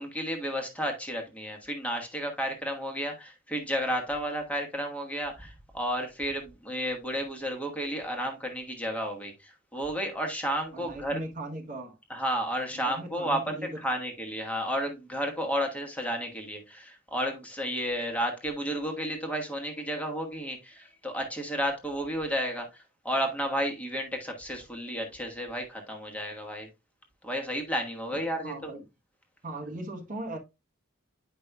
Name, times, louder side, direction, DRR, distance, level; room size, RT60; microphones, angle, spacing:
voice 1, 0.0-11.2 12.1-26.7 27.2-28.7, equal, 5° left, 1.2 m, -32 dB
voice 2, 10.7-12.0 12.7-13.8 28.1-28.8 29.4-30.4, right 1 dB, 40° right, 1.0 m, -39 dB
9.3 x 5.2 x 2.3 m
head